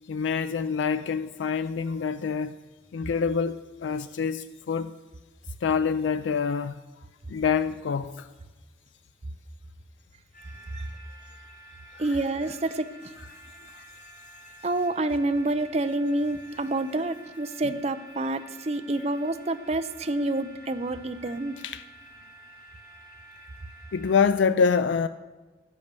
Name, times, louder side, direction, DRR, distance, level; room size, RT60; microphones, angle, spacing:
voice 1, 0.1-2.6 2.9-4.9 5.6-6.8 7.3-8.3 12.1-12.2 13.7-13.9 21.6-21.8 23.9-25.1, left 6 dB, 85° left, 0.4 m, -26 dB
sound 1, 10.3-24.2, right 1 dB, 50° left, 3.1 m, -50 dB
voice 2, 12.0-13.1 14.6-21.6, right 2 dB, 35° right, 0.6 m, -28 dB
11.5 x 8.3 x 6.8 m
head